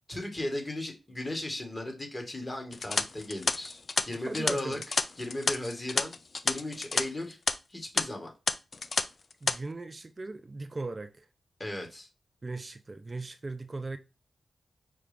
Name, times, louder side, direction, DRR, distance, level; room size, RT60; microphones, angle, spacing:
voice 1, 0.1-6.1 6.4-7.4 7.7-8.3 11.6-12.1, left 1 dB, 30° left, 1.7 m, -36 dB
sound 1, 2.7-7.0 7.3-7.5 8.0-8.1 8.5-9.0 9.3-9.5, left 4 dB, 60° left, 0.4 m, -29 dB
voice 2, 4.1-4.8 9.4-11.3 12.4-14.0, right 3 dB, 40° right, 0.4 m, -38 dB
5.7 x 2.4 x 3.5 m
cardioid pair, 50°, 0 cm